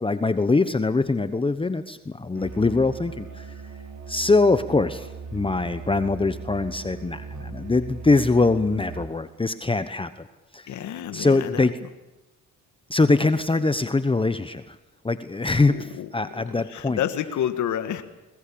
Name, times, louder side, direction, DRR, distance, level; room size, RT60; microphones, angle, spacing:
voice 1, 0.0-3.5 4.1-10.1 10.5-10.8 11.1-11.7 12.9-14.8 15.0-17.0, left 3 dB, 15° left, 11 dB, 1.0 m, -23 dB
Musical instrument, 2.3-9.2, right 4 dB, 70° right, 3.4 m, -39 dB
voice 2, 10.7-11.6 15.7-16.1 16.3-16.4 16.7-18.0, left 10 dB, 75° left, 9 dB, 1.7 m, -29 dB
21.5 x 20.5 x 8.7 m, 1.0 s
cardioid pair, 90°, 30 cm